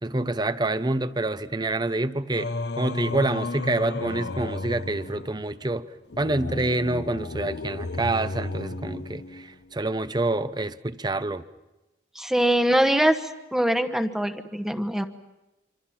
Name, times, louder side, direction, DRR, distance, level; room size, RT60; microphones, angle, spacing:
voice 1, 0.0-2.5 2.8-5.8 6.2-11.4, right 2 dB, 25° right, 0.8 m, -27 dB
Singing, 2.3-9.7, left 2 dB, 65° left, 0.8 m, -33 dB
voice 2, 12.1-13.2 13.5-15.0, right 1 dB, ahead, 1.2 m, -22 dB
26.5 x 26.0 x 5.9 m
head